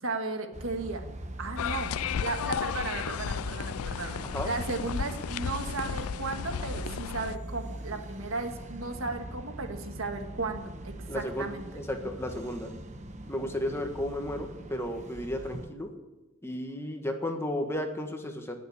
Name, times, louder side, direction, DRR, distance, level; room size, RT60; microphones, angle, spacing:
voice 1, 0.0-1.1 1.4-1.9 2.2-11.7, right 3 dB, 70° right, 4 dB, 1.7 m, -35 dB
sound 1, 0.5-15.7, right 1 dB, 35° right, 1.1 m, -42 dB
sound 2, 1.6-7.4, left 8 dB, 90° left, 0.4 m, -34 dB
voice 2, 11.1-12.7 13.3-15.9 16.4-18.6, left 1 dB, 10° left, 4 dB, 1.5 m, -33 dB
19.5 x 6.9 x 8.4 m, 1.1 s
head